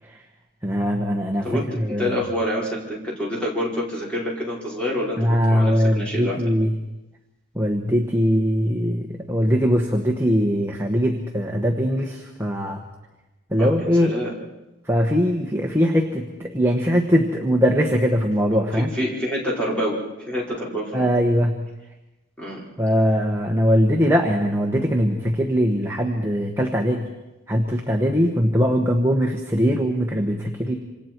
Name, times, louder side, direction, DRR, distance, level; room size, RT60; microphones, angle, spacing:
voice 1, 0.6-1.4 1.8-2.1 5.2-6.7 7.5-12.8 13.5-14.1 14.9-18.9 20.9-21.6 22.8-27.0 27.5-30.7, equal, 10° right, 0 dB, 1.3 m, -21 dB
voice 2, 1.4-6.5 13.6-13.7 14.0-14.3 18.7-21.1 22.4-22.7, equal, 5° left, -5 dB, 4.9 m, -27 dB
27.0 x 26.5 x 4.6 m, 1.0 s
head